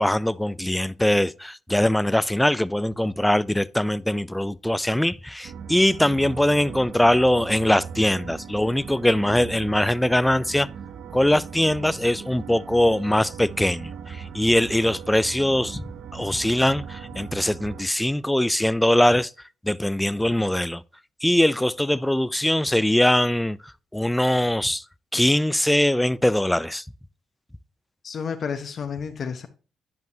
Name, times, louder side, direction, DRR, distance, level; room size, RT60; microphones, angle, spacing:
voice 1, 0.0-10.7 11.1-15.8 16.1-19.3 19.6-20.8 21.2-24.8 25.1-26.8, left 1 dB, 5° left, 0.4 m, -22 dB
sound 1, 5.4-17.8, right 7 dB, 65° right, 0.6 m, -39 dB
voice 2, 28.0-29.5, left 6 dB, 50° left, 0.9 m, -31 dB
10.5 x 5.3 x 2.7 m
cardioid pair, 90°, 0 cm